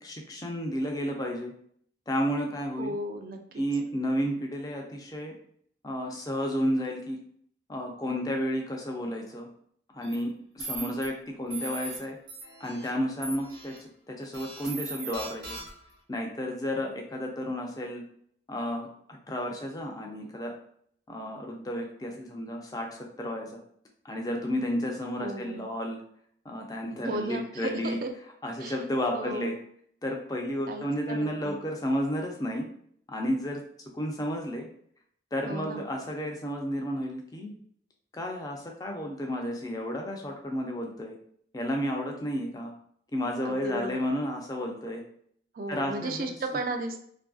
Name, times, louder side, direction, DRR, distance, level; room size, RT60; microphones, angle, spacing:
voice 1, 0.0-1.5 2.1-2.9 3.6-5.3 5.8-7.2 7.7-9.5 9.9-10.3 10.6-12.2 12.6-13.7 14.1-15.6 16.1-18.0 18.5-20.5 21.1-23.6 24.0-26.0 26.4-28.0 28.4-29.6 30.0-32.7 33.1-33.6 33.9-34.7 35.3-37.5 38.1-41.2 41.5-42.7 43.1-45.0 45.7-46.3, equal, 20° left, 1 dB, 0.4 m, -32 dB
voice 2, 2.8-3.6 25.2-25.6 27.0-28.1 28.6-28.8 29.1-29.5 30.7-31.6 35.5-35.8 43.4-44.0 45.5-47.0, right 2 dB, 50° right, 5 dB, 0.3 m, -35 dB
sound 1, 10.0-10.1 10.6-11.1 11.5-12.0 12.3-12.9 13.2-13.8 14.3-15.9, right 2 dB, 75° right, 1.0 m, -39 dB
2.7 x 2.5 x 2.3 m, 0.64 s
head